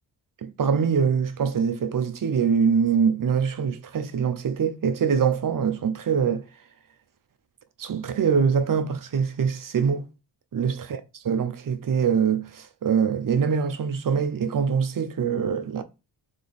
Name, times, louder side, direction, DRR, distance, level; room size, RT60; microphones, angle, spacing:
voice 1, 0.4-6.4 7.8-10.1 10.5-10.7 11.2-15.8, right 6 dB, 50° right, 0.7 m, -24 dB
3.3 x 3.0 x 4.1 m
cardioid pair, 75°, 42 cm